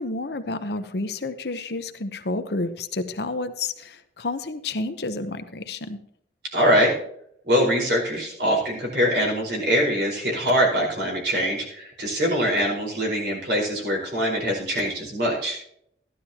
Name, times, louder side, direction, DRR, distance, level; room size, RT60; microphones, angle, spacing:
voice 1, 0.0-6.0, left 2 dB, 60° left, 9 dB, 0.9 m, -30 dB
voice 2, 6.5-6.9 7.5-15.6, equal, 65° right, -1 dB, 4.7 m, -23 dB
14.0 x 11.5 x 2.9 m, 0.70 s
head